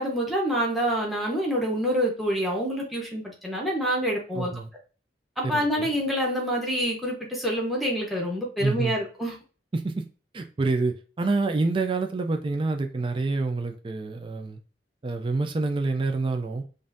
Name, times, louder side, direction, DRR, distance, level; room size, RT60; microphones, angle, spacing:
voice 1, 0.0-4.5 5.4-9.3, equal, ahead, -1 dB, 1.1 m, -27 dB
voice 2, 4.3-4.7 5.4-5.9 8.6-9.0 9.7-10.0 10.3-14.6 15.0-16.6, right 3 dB, 30° right, 5 dB, 0.4 m, -27 dB
5.3 x 2.6 x 2.6 m, 0.36 s
head